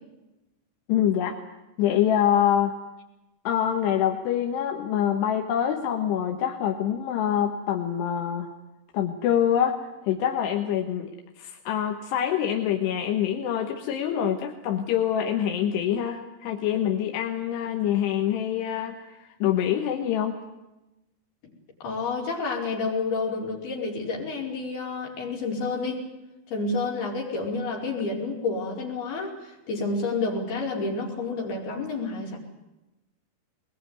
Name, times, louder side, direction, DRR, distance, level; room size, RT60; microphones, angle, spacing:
voice 1, 0.9-1.4 1.8-2.7 3.5-8.5 8.9-20.4, left 10 dB, 90° left, 3 dB, 3.6 m, -25 dB
voice 2, 21.8-26.1 26.5-32.4, left 3 dB, 65° left, -2 dB, 6.8 m, -29 dB
22.5 x 21.0 x 9.5 m, 0.98 s
omnidirectional pair, 4.8 m